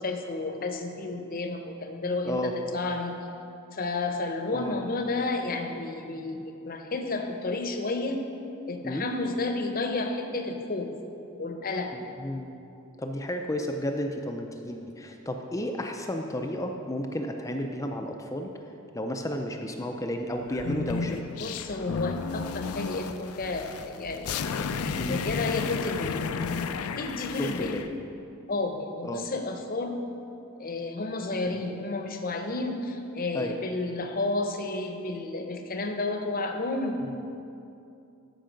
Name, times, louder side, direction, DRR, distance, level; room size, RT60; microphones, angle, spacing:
voice 1, 0.0-3.2 3.7-8.2 8.7-10.9 11.4-11.9 21.4-26.2 27.0-27.7 28.5-30.0 30.6-37.0, left 2 dB, 40° left, 4 dB, 0.8 m, -31 dB
voice 2, 11.9-12.5 13.0-18.5 18.9-21.2 25.0-25.1 27.4-27.9 29.0-29.2 33.3-33.5 37.0-37.1, left 1 dB, 15° left, 4 dB, 0.4 m, -32 dB
sound 1, 20.5-27.9, left 5 dB, 75° left, 0.4 m, -33 dB
13.0 x 5.5 x 5.2 m, 2.7 s
head